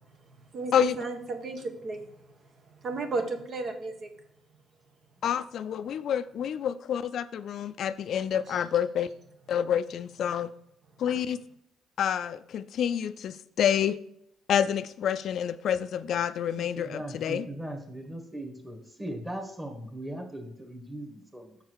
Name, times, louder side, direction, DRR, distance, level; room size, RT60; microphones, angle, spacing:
voice 1, 0.0-4.1 8.5-8.6, right 3 dB, 55° right, 5 dB, 1.3 m, -35 dB
voice 2, 5.2-9.1 9.5-10.5 11.0-11.4 12.0-14.0 14.5-17.5, left 9 dB, 70° left, 13 dB, 0.4 m, -28 dB
voice 3, 16.6-21.6, right 1 dB, 15° right, 4 dB, 1.9 m, -39 dB
6.6 x 4.7 x 6.3 m, 0.73 s
cardioid pair, 90°, 0 cm